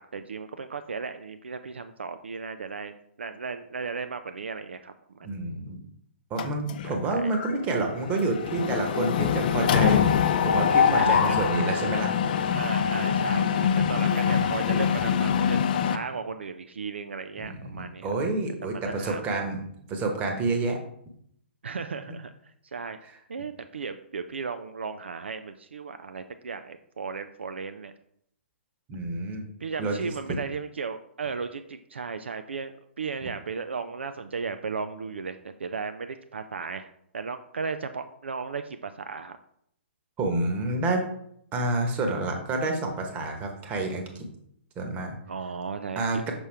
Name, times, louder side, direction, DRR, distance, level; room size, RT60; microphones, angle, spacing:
voice 1, 0.0-2.9 3.2-5.3 6.8-7.3 10.9-11.5 12.5-15.6 15.9-18.1 18.6-19.4 21.6-23.0 23.3-27.9 29.6-39.4 45.3-46.2, right 5 dB, 70° right, 9 dB, 0.4 m, -35 dB
voice 2, 5.2-5.8 6.3-10.2 10.4-12.1 14.1-14.4 17.4-19.6 19.9-20.8 28.9-29.4 29.8-30.1 40.2-41.1 41.5-44.3 44.8-45.2 46.0-46.3, right 2 dB, 25° right, 3 dB, 1.1 m, -28 dB
Mechanisms, 6.4-7.0 7.3-7.5 7.8-16.0, left 7 dB, 45° left, 0.5 m, -24 dB
6.1 x 5.4 x 3.4 m, 0.71 s
figure-of-eight pair, 120°, 6 cm